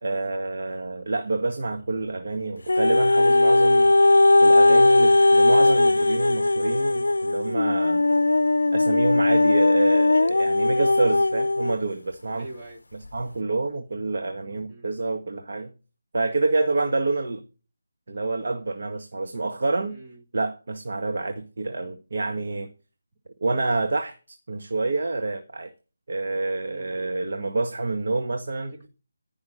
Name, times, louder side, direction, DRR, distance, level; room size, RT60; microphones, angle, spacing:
voice 1, 0.0-3.9 4.4-8.0 8.7-12.5 12.9-15.7 16.1-17.4 18.1-20.0 20.3-22.7 23.4-25.7 26.1-28.7, right 3 dB, 60° right, 1.6 m, -27 dB
sound 1, 2.7-11.8 12.4-12.5, left 2 dB, 85° left, 0.5 m, -18 dB
voice 2, 12.3-12.8 14.7-14.9 19.9-20.2 26.5-27.1 28.7-28.9, right 1 dB, 30° right, 2.2 m, -44 dB
14.5 x 5.9 x 6.4 m
figure-of-eight pair, 165°, 0 cm